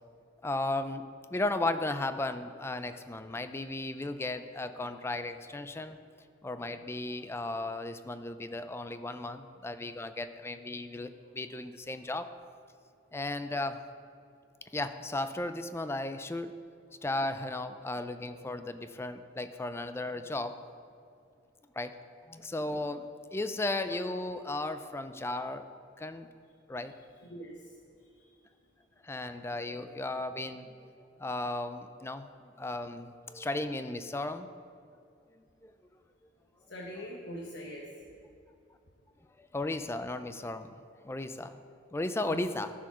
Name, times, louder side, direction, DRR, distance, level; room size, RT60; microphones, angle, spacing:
voice 1, 0.4-1.0 1.3-6.0 6.4-12.3 13.1-13.8 14.7-16.6 17.0-20.6 21.8-22.0 22.3-25.7 26.0-26.3 26.7-26.9 29.0-30.9 31.2-32.3 32.6-34.5 35.6-35.7 39.4-40.7 41.0-41.6 41.9-42.7, left 2 dB, 15° left, 10 dB, 0.4 m, -35 dB
voice 2, 36.7-37.8 42.2-42.4, equal, 70° left, -1 dB, 1.0 m, -42 dB
14.0 x 4.9 x 5.9 m, 2.5 s
head